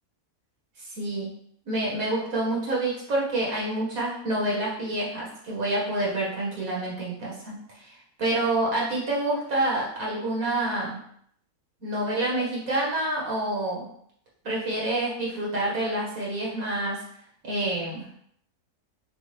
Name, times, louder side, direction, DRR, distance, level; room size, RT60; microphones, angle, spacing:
voice 1, 0.8-1.3 1.7-7.9 8.2-11.0 11.8-13.9 14.4-17.0 17.4-18.1, right 1 dB, 65° right, -5 dB, 1.8 m, -28 dB
5.5 x 2.4 x 3.3 m, 0.67 s
omnidirectional pair, 1.6 m